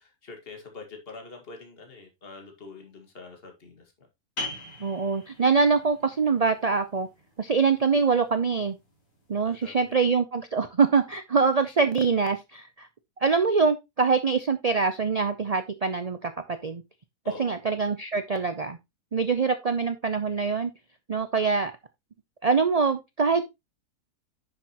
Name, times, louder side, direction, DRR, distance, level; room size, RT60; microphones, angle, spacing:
voice 1, 0.0-4.1 9.5-10.0 17.2-17.6, left 3 dB, 35° left, 3 dB, 2.1 m, -45 dB
sound 1, 4.4-9.7, left 2 dB, 55° left, 4.3 m, -42 dB
voice 2, 4.8-7.1 7.4-8.8 9.3-12.9 13.2-16.8 17.4-18.8 19.1-20.7 21.1-21.7 22.4-23.5, right 5 dB, 50° right, 9 dB, 0.4 m, -24 dB
10.0 x 6.4 x 3.0 m, 0.21 s
omnidirectional pair, 1.7 m